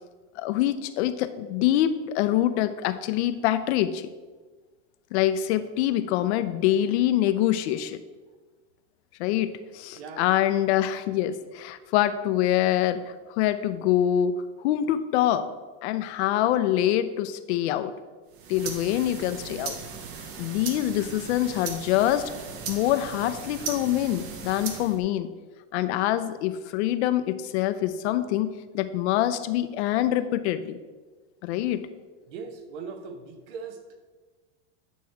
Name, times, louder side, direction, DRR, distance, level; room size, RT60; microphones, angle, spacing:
voice 1, 0.4-4.1 5.1-8.0 9.2-15.5 15.8-17.9 18.5-19.8 20.4-22.3 22.7-25.3 25.7-30.8 31.4-31.9, left 12 dB, 70° left, 12 dB, 0.6 m, -25 dB
voice 2, 9.9-10.4 32.3-33.8, right 5 dB, 70° right, 7 dB, 1.0 m, -39 dB
sound 1, 18.3-25.0, right 6 dB, 40° right, 0.9 m, -38 dB
8.9 x 3.1 x 4.6 m, 1.3 s
supercardioid pair, 135°, 35 cm